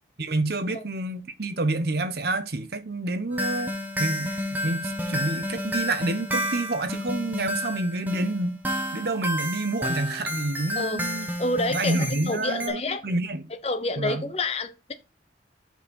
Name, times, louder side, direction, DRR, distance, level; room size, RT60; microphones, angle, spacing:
voice 1, 0.2-3.7 4.0-4.3 4.6-8.6 8.9-11.3 11.7-13.4 14.0-14.2, right 2 dB, 55° right, 0.9 m, -28 dB
sound 1, 3.3-12.7, equal, 10° right, 1.2 m, -31 dB
voice 2, 11.4-13.0 13.6-14.9, left 2 dB, 35° left, 0.8 m, -28 dB
7.2 x 5.4 x 4.2 m
head